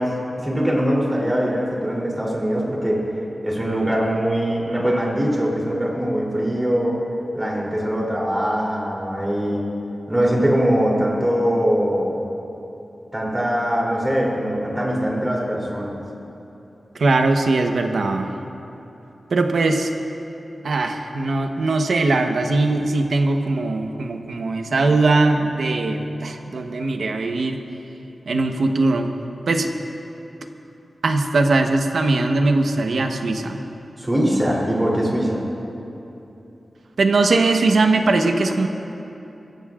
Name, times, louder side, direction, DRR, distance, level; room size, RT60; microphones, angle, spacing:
voice 1, 0.0-3.1 3.4-7.0 7.3-9.7 10.1-12.2 13.1-16.0 34.0-35.4, equal, 15° right, -4 dB, 3.2 m, -22 dB
voice 2, 17.0-18.3 19.3-19.9 20.6-27.6 28.3-29.1 29.5-29.7 31.0-33.6 37.0-38.7, right 3 dB, 80° right, 4 dB, 1.0 m, -20 dB
23.0 x 16.0 x 2.5 m, 3.0 s
wide cardioid pair, 115°, 0 cm